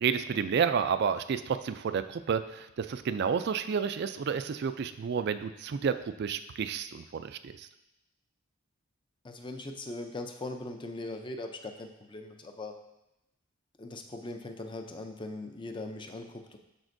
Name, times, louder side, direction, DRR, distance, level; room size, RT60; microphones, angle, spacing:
voice 1, 0.0-7.7, right 6 dB, 50° right, 11 dB, 0.3 m, -30 dB
voice 2, 9.2-12.7 13.8-16.6, left 2 dB, 25° left, 5 dB, 0.5 m, -40 dB
12.5 x 4.3 x 2.6 m, 0.90 s
head